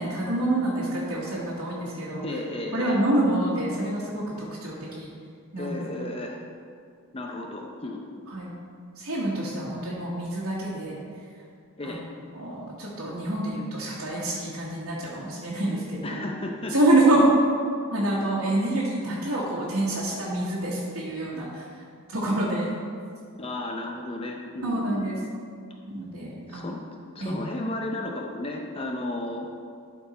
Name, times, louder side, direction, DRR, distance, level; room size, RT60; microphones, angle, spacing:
voice 1, 0.0-2.2 2.7-5.1 5.5-5.8 8.3-8.5 9.0-11.0 11.8-12.0 12.3-16.2 16.7-17.3 17.9-21.7 22.1-22.7 24.6-25.2 25.9-26.7 27.2-27.4, right 1 dB, 80° right, -8 dB, 1.6 m, -27 dB
voice 2, 2.2-3.0 5.6-6.4 7.1-8.0 11.8-12.0 16.0-16.7 17.1-17.3 19.2-19.3 23.4-25.3 26.5-26.8 27.1-29.5, left 2 dB, 25° left, 1 dB, 0.6 m, -33 dB
12.0 x 4.5 x 4.2 m, 2.2 s
head